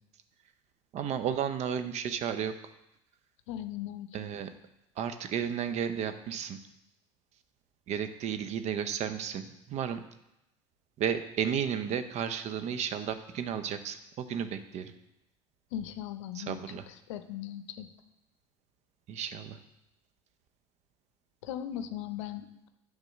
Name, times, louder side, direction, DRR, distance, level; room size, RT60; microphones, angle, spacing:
voice 1, 0.9-2.5 4.1-4.5 5.0-6.6 7.9-10.0 11.0-14.9 16.3-16.9 19.1-19.6, right 8 dB, 45° right, 10 dB, 0.7 m, -33 dB
voice 2, 3.5-4.1 15.7-16.6 17.1-17.9 21.4-22.7, left 11 dB, 70° left, 11 dB, 0.6 m, -38 dB
9.0 x 3.8 x 6.4 m, 0.86 s
hypercardioid pair, 75°, 16 cm